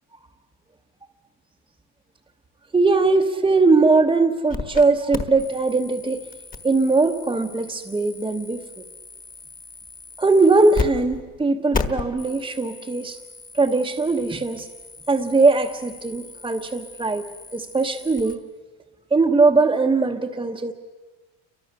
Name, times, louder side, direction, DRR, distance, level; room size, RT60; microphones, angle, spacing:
voice 1, 2.7-6.2 6.6-8.6 10.2-13.2 13.5-14.7 15.1-17.3 17.5-18.4 19.1-20.7, right 3 dB, 10° right, -1 dB, 1.0 m, -20 dB
sound 1, 4.5-4.8 5.1-10.9 11.1-11.2 11.7-18.3, left 4 dB, 20° left, 1.5 m, -35 dB
29.5 x 24.0 x 6.6 m, 1.2 s
cardioid pair, 145°, 42 cm